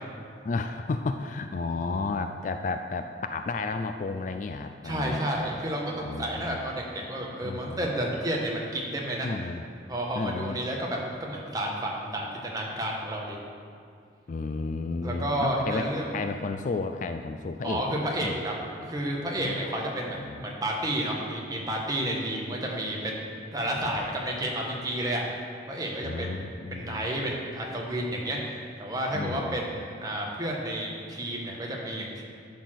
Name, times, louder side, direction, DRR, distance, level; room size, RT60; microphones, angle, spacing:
voice 1, 0.4-5.2 6.0-6.6 7.4-7.8 9.2-9.6 10.1-10.6 14.3-15.9 16.1-18.4 19.4-20.5 26.0-27.1 29.1-29.6, left 3 dB, 40° left, 7 dB, 0.3 m, -32 dB
voice 2, 4.8-9.3 9.9-13.4 15.0-16.1 17.6-18.5 18.8-25.2 25.7-32.2, right 1 dB, 20° right, -2 dB, 1.2 m, -31 dB
11.5 x 4.4 x 6.3 m, 2.3 s
head